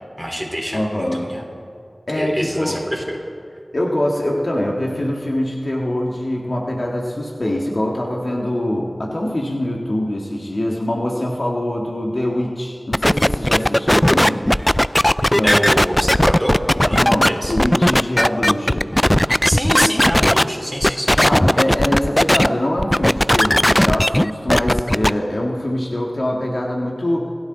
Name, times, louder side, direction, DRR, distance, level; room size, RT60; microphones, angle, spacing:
voice 1, 0.2-1.4 2.1-3.2 15.4-16.6 16.8-17.6 19.4-21.2, equal, ahead, -1 dB, 4.1 m, -25 dB
voice 2, 0.7-1.3 2.1-2.8 3.7-14.5 15.3-15.6 16.9-18.9 21.2-27.3, left 1 dB, 65° left, -1 dB, 1.8 m, -23 dB
sound 1, 12.9-20.4 20.8-22.5 22.8-25.1, left 1 dB, 15° left, 0.4 m, -16 dB
28.0 x 13.0 x 4.0 m, 2.3 s
wide cardioid pair, 40°, 0 cm